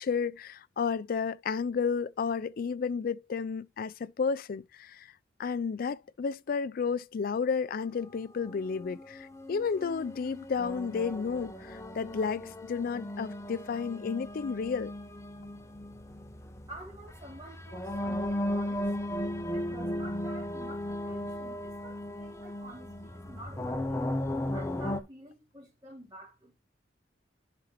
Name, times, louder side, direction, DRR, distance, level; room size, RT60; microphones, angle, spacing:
voice 1, 0.0-5.1 5.4-14.9, left 5 dB, 55° left, 0.4 m, -32 dB
sound 1, 8.5-25.0, left 1 dB, 15° left, 0.8 m, -36 dB
voice 2, 16.7-19.0 19.5-24.1 24.5-26.6, right 1 dB, 25° right, 3.0 m, -49 dB
11.0 x 5.0 x 3.0 m
head